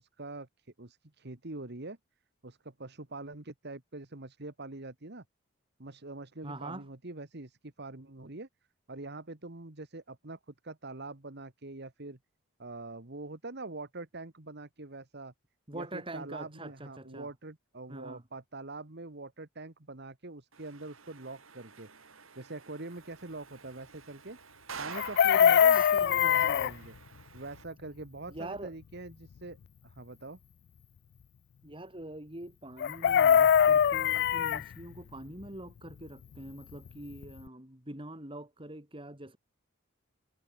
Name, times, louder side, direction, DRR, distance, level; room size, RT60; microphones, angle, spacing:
voice 1, 0.0-2.0 2.4-5.2 5.8-8.5 8.9-12.2 12.6-15.3 15.7-21.9 22.4-24.4 24.8-27.0 27.3-29.6 29.8-30.4, right 2 dB, 55° right, 1.8 m, -44 dB
voice 2, 6.4-6.9 15.7-17.3 17.9-18.2 25.3-25.4 25.7-26.8 28.3-28.7 31.6-39.4, right 1 dB, 25° right, 5.1 m, -44 dB
sound 1, 20.5-27.6, right 5 dB, 90° right, 5.3 m, -49 dB
Chicken rooster, 24.9-26.7 32.8-34.6 36.9-37.0 37.2-37.5, left 8 dB, 55° left, 0.3 m, -23 dB
head